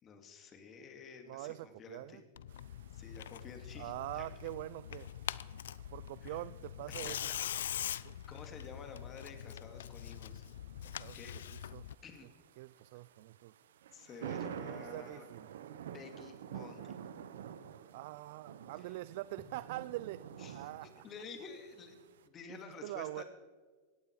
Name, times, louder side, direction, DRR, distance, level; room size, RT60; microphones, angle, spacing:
voice 1, 0.0-2.2 2.9-4.3 6.2-6.4 6.9-10.4 11.1-11.4 12.0-12.3 13.9-15.3 15.9-17.0 18.8-19.0 20.4-23.2, left 5 dB, 30° left, 5 dB, 2.6 m, -51 dB
voice 2, 1.2-2.2 3.8-5.1 5.9-7.3 8.0-8.1 10.8-11.2 11.5-11.9 12.6-13.5 14.7-15.5 17.9-20.3 20.5-21.0 22.5-23.2, right 17 dB, 60° right, 17 dB, 0.4 m, -44 dB
Tearing, 2.4-12.0, left 10 dB, 85° left, 0.5 m, -43 dB
sound 1, 2.5-22.3, right 9 dB, 80° right, 0.9 m, -51 dB
19.0 x 15.0 x 4.8 m, 1.5 s
supercardioid pair, 130°, 0 cm